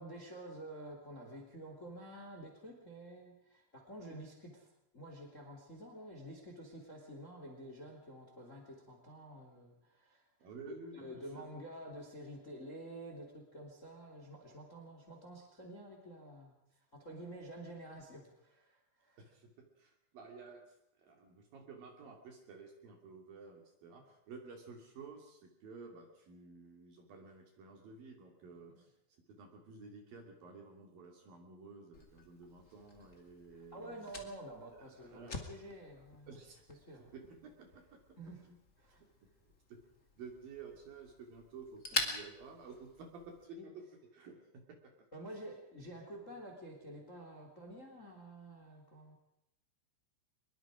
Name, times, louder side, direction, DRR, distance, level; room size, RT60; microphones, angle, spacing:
voice 1, 0.0-4.7 4.9-10.2 10.7-16.6 16.9-19.2 28.7-28.8 33.7-36.4 36.7-37.1 38.2-38.4 38.8-39.0 43.6-43.7 45.1-49.1, right 1 dB, 20° left, 2 dB, 2.7 m, -49 dB
voice 2, 10.4-11.5 19.2-28.9 29.3-33.9 34.7-35.5 36.3-36.6 37.0-38.0 38.5-38.6 39.0-39.3 39.7-39.8 40.2-43.8 44.1-45.1, right 4 dB, 50° right, 2 dB, 3.8 m, -53 dB
Fire, 31.9-43.4, left 3 dB, 70° left, 0.7 m, -46 dB
24.0 x 22.0 x 5.0 m, 0.81 s
omnidirectional pair, 5.8 m